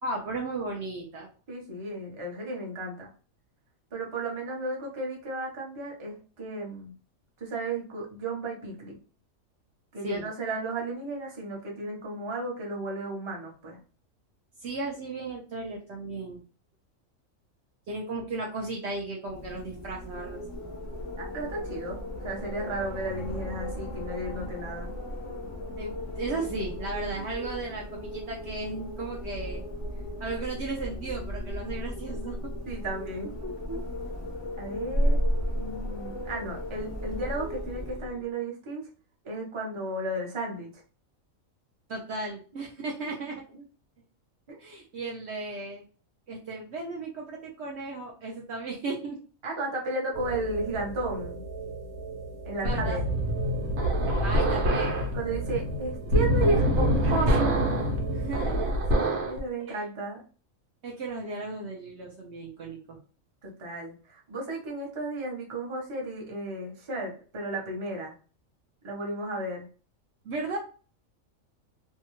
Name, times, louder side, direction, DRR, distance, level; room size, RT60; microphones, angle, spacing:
voice 1, 0.0-1.3 10.0-10.3 14.6-16.4 17.9-20.4 25.8-29.6 30.2-32.4 41.9-43.4 44.6-45.8 46.3-49.2 52.6-53.0 54.2-55.0 58.1-59.3 59.7-59.8 60.8-63.0 70.2-70.6, right 3 dB, 65° right, -1 dB, 0.8 m, -35 dB
voice 2, 1.5-3.1 3.9-6.9 7.4-9.0 9.9-13.8 21.2-24.9 27.2-27.3 32.7-33.9 34.6-35.2 35.6-38.8 39.2-40.8 44.5-44.6 49.4-51.4 52.5-53.0 55.1-57.5 59.3-60.2 63.4-68.1 68.8-69.6, right 2 dB, 30° right, -1 dB, 0.6 m, -34 dB
Wind, 19.2-38.3, equal, 50° left, 0.4 m, -34 dB
sound 1, 50.1-59.1, right 4 dB, 45° right, 1.1 m, -38 dB
sound 2, 52.6-59.4, equal, 80° right, 1.1 m, -26 dB
2.7 x 2.2 x 2.9 m, 0.38 s
omnidirectional pair, 1.4 m